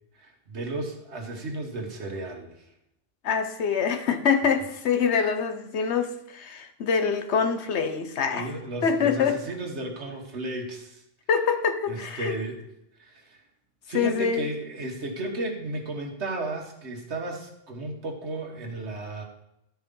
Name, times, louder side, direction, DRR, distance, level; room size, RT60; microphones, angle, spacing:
voice 1, 0.1-2.6 8.3-11.0 11.9-12.6 13.0-13.4 13.9-19.2, right 2 dB, 70° right, 1.7 m, -34 dB
voice 2, 3.2-8.5 8.8-9.4 11.3-12.4 13.9-14.5, left 6 dB, 70° left, 1.1 m, -25 dB
12.0 x 4.7 x 5.3 m
omnidirectional pair, 1.2 m